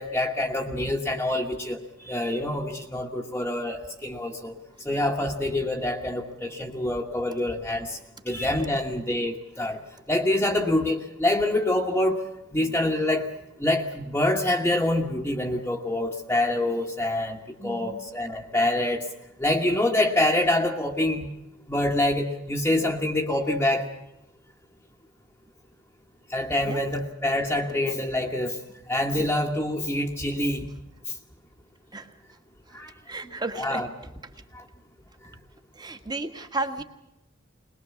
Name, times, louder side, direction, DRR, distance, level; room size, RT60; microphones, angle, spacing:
voice 1, 0.0-4.5 4.8-8.0 8.2-9.8 10.1-12.2 12.5-13.3 13.6-19.1 19.4-21.3 21.7-23.9 26.3-28.6 28.9-30.7 32.7-32.9 33.6-33.9 34.5-34.6, left 1 dB, 10° left, -2 dB, 1.3 m, -26 dB
voice 2, 17.6-18.0 26.6-26.8 31.9-32.1 32.7-32.8 33.1-33.8 35.7-36.8, right 2 dB, 20° right, 7 dB, 1.5 m, -33 dB
21.5 x 21.0 x 7.0 m, 0.92 s
head